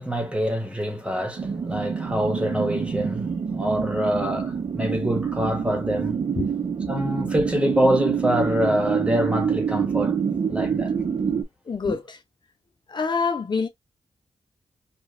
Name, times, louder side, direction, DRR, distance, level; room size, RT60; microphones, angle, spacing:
voice 1, 0.0-6.2 6.8-10.2 10.5-10.9 11.8-11.9, equal, 10° right, 1.3 m, -25 dB
sound 1, 1.4-11.4, right 6 dB, 60° right, 0.9 m, -26 dB
voice 2, 11.7-12.2 12.9-13.7, left 5 dB, 45° left, 0.6 m, -26 dB
5.0 x 2.5 x 2.4 m
wide cardioid pair, 110°, 10 cm